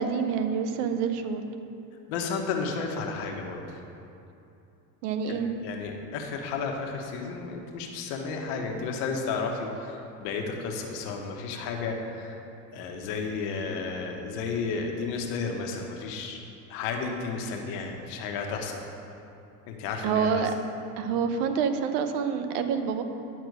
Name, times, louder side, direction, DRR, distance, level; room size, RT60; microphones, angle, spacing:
voice 1, 0.0-1.4 5.0-5.5 20.0-20.5 21.0-23.0, right 6 dB, 80° right, 8 dB, 0.9 m, -27 dB
voice 2, 2.1-3.8 5.2-12.4 12.7-16.4 16.7-18.8 19.7-20.3, left 4 dB, 70° left, 2 dB, 1.4 m, -32 dB
11.0 x 4.3 x 6.4 m, 2.7 s
supercardioid pair, 100°, 45 cm